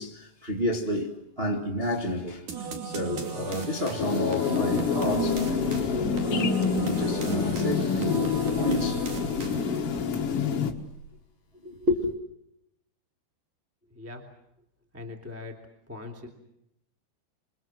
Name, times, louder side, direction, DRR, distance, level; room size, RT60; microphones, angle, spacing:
voice 1, 0.0-6.3 6.8-9.0 9.6-10.0 11.6-12.1, left 1 dB, 65° right, 0.5 m, -31 dB
sound 1, 2.5-9.9, right 4 dB, 50° right, 3.9 m, -38 dB
sound 2, 4.0-10.7, left 5 dB, 60° left, 1.5 m, -27 dB
sound 3, 4.8-11.1, right 3 dB, 90° right, 4.8 m, -41 dB
voice 2, 13.9-14.2 14.9-15.6 15.9-16.3, left 3 dB, 5° right, 2.0 m, -40 dB
28.0 x 23.0 x 7.6 m
omnidirectional pair, 5.1 m